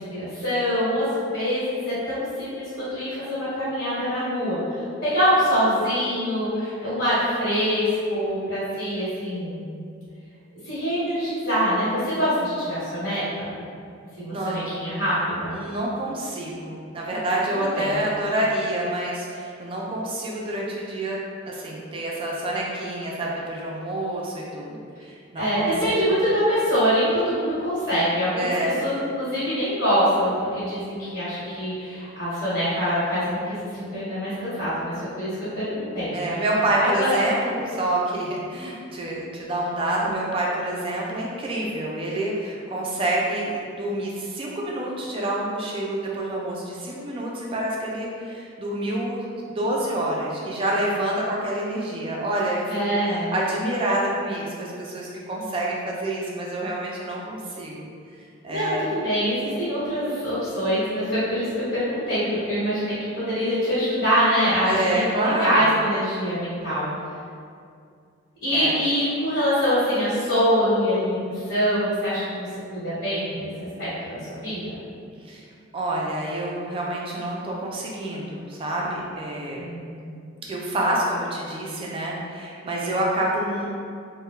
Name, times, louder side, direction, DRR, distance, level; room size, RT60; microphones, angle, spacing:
voice 1, 0.0-4.6 5.0-9.6 10.6-13.5 14.2-15.6 17.6-18.0 25.4-28.5 28.8-36.4 36.8-37.1 52.7-53.3 58.5-66.9 68.4-74.7 79.6-80.0, equal, 65° left, -13 dB, 1.1 m, -24 dB
voice 2, 14.3-14.6 15.5-21.2 21.5-26.1 28.3-28.8 36.1-57.9 58.4-58.9 64.6-65.6 68.5-68.7 75.2-75.5 75.7-79.6 80.5-83.7, right 1 dB, 25° right, -3 dB, 0.3 m, -27 dB
2.2 x 2.0 x 3.0 m, 2.4 s
head